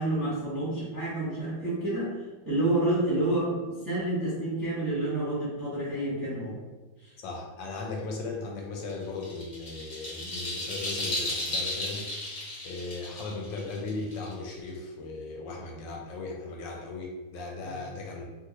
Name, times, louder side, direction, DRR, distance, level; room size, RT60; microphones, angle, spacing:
voice 1, 0.0-2.1 2.4-6.6 7.0-7.1 17.7-17.8, right 1 dB, 20° right, -9 dB, 0.6 m, -29 dB
voice 2, 7.2-12.1 12.6-18.5, left 3 dB, 75° left, 0 dB, 1.2 m, -37 dB
sound 1, 8.9-14.7, left 1 dB, 35° left, 0.7 m, -34 dB
3.1 x 2.4 x 2.8 m, 1.2 s
omnidirectional pair, 2.1 m